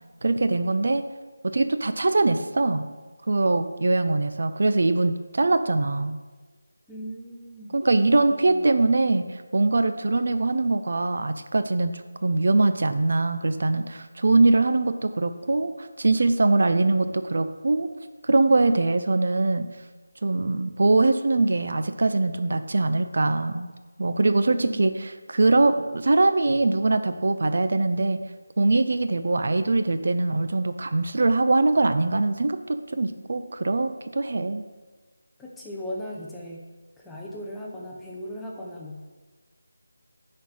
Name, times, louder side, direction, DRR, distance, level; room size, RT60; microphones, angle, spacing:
voice 1, 0.2-1.0 1.4-2.9 3.3-6.2 7.7-17.9 18.2-19.7 20.2-23.7 24.0-28.2 28.6-34.6, right 2 dB, 55° right, 9 dB, 0.5 m, -22 dB
voice 2, 6.9-7.8 8.1-8.7 24.6-25.0 35.4-36.6 37.0-39.0, equal, 5° left, -4 dB, 0.7 m, -38 dB
9.2 x 4.3 x 4.8 m, 1.3 s
figure-of-eight pair, 170°, 0 cm